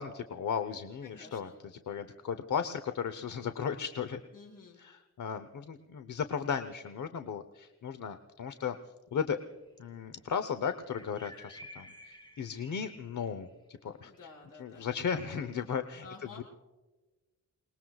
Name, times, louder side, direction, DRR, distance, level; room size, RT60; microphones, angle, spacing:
voice 1, 0.0-4.2 4.8-8.8 9.1-9.4 9.8-14.1 14.6-16.4, left 7 dB, 70° left, 10 dB, 0.9 m, -36 dB
voice 2, 1.0-1.6 4.3-4.8 14.1-14.8 16.0-16.4, left 4 dB, 90° left, -1 dB, 5.8 m, -51 dB
sound 1, 9.5-9.7 10.9-13.5, equal, 15° left, 4.9 m, -52 dB
28.5 x 20.5 x 2.4 m, 1.2 s
wide cardioid pair, 110°, 32 cm